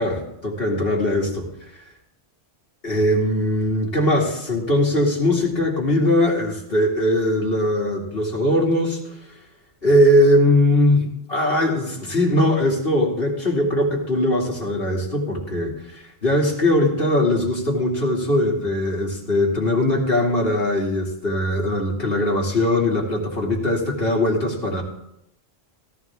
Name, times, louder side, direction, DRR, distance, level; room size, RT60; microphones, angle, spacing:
voice 1, 0.0-1.5 2.8-9.4 9.8-24.8, left 1 dB, 60° left, -2 dB, 2.7 m, -20 dB
17.0 x 13.0 x 3.6 m, 0.82 s
omnidirectional pair, 1.1 m